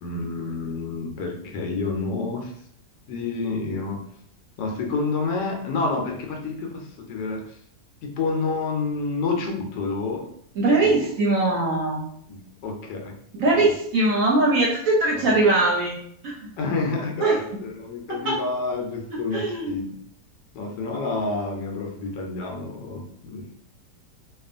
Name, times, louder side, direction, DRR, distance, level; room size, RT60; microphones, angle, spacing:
voice 1, 0.0-2.5 3.1-4.0 4.6-7.5 8.0-10.3 10.8-11.1 12.3-13.2 13.5-13.7 15.2-15.4 16.6-19.9 20.5-23.5, left 3 dB, 85° left, 2 dB, 1.2 m, -29 dB
voice 2, 10.6-12.0 13.4-16.0 16.2-16.5 17.2-17.4 19.3-19.7, right 2 dB, 65° right, -3 dB, 0.9 m, -21 dB
2.8 x 2.3 x 2.5 m, 0.67 s
omnidirectional pair, 1.8 m